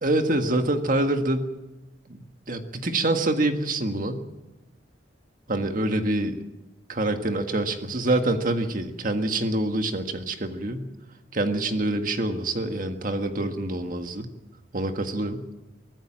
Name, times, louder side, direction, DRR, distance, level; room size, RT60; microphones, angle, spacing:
voice 1, 0.0-1.5 2.1-4.2 5.5-6.4 6.9-10.9 11.3-14.3 14.7-15.4, right 2 dB, 45° right, 6 dB, 1.7 m, -26 dB
24.0 x 14.5 x 7.5 m, 1.0 s
head